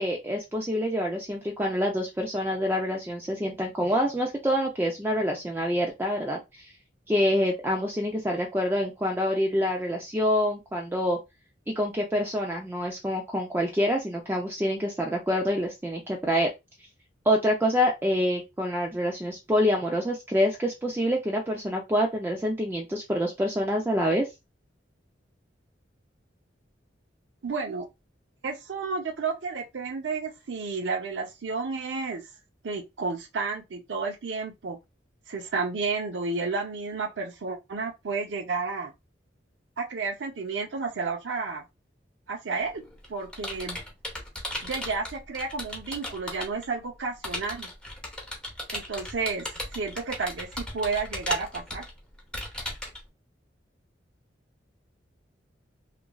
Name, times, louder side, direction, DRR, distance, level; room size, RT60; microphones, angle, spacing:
voice 1, 0.0-6.7 7.1-11.2 11.7-16.5 17.3-24.3, equal, 10° right, 0.4 m, -26 dB
voice 2, 27.4-27.9 28.4-32.3 32.6-34.8 35.3-38.9 39.8-41.6 42.3-42.8 43.1-43.8 44.6-47.7 48.7-51.8, right 4 dB, 75° right, 0.6 m, -31 dB
Computer keyboard, 42.6-46.6 47.2-53.0, left 1 dB, 5° left, 0.8 m, -36 dB
2.9 x 2.5 x 2.2 m
head